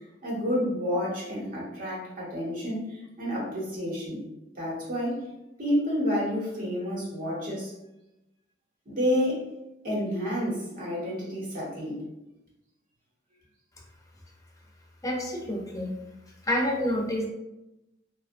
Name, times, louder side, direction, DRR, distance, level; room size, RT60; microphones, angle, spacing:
voice 1, 0.2-4.2 4.5-5.2 5.6-7.7 8.9-9.5 9.8-12.1, equal, 50° right, -5 dB, 1.0 m, -29 dB
voice 2, 15.0-15.9 16.4-17.3, left 1 dB, 20° left, -1 dB, 0.5 m, -28 dB
2.6 x 2.2 x 2.5 m, 0.92 s
head